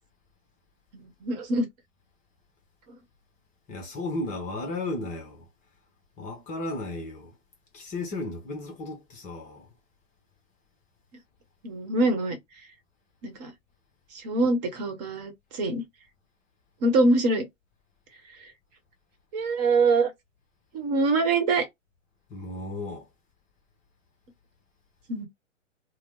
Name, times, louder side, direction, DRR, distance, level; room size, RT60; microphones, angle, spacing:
voice 1, 0.9-1.7 11.6-12.4 13.2-13.5 14.1-15.8 16.8-17.5 19.3-20.1 20.7-21.7 25.1-25.3, right 3 dB, 35° right, 1.1 m, -24 dB
voice 2, 3.7-5.5 6.2-7.3 7.7-9.7 22.3-23.1, left 2 dB, 20° left, 0.9 m, -34 dB
2.9 x 2.1 x 3.6 m
hypercardioid pair, 125°, 38 cm